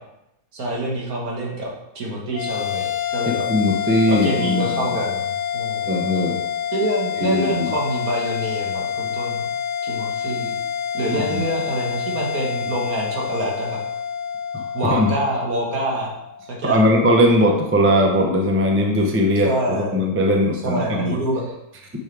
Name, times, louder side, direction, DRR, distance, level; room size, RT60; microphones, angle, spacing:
voice 1, 0.5-3.5 4.1-5.9 6.7-9.5 9.8-10.6 10.9-13.8 14.7-16.1 16.5-16.8 19.4-20.1 20.5-21.5, right 1 dB, 65° right, -2 dB, 2.0 m, -26 dB
sound 1, 2.3-16.9, left 8 dB, 65° left, 0.8 m, -27 dB
voice 2, 3.5-4.8 5.9-6.4 7.2-7.7 11.1-11.2 14.5-14.6 14.9-15.1 16.6-21.2, equal, 15° right, 1 dB, 0.5 m, -19 dB
6.8 x 6.3 x 3.4 m, 0.86 s
omnidirectional pair, 1.7 m